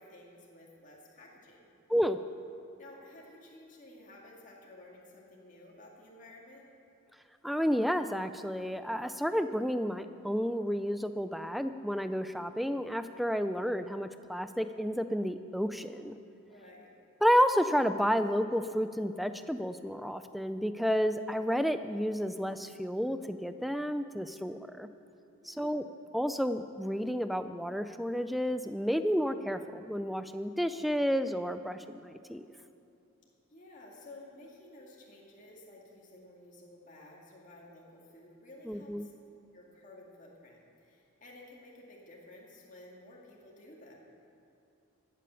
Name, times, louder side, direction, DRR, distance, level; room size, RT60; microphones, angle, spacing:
voice 1, 0.0-1.7 2.8-6.7 16.5-16.9 25.4-25.9 33.5-39.1 39.5-44.0, left 1 dB, 40° left, -3 dB, 2.2 m, -53 dB
voice 2, 7.4-16.2 17.2-24.9 25.4-25.8 26.1-32.5 38.7-39.1, equal, ahead, 10 dB, 0.4 m, -31 dB
15.5 x 8.4 x 6.9 m, 2.7 s
head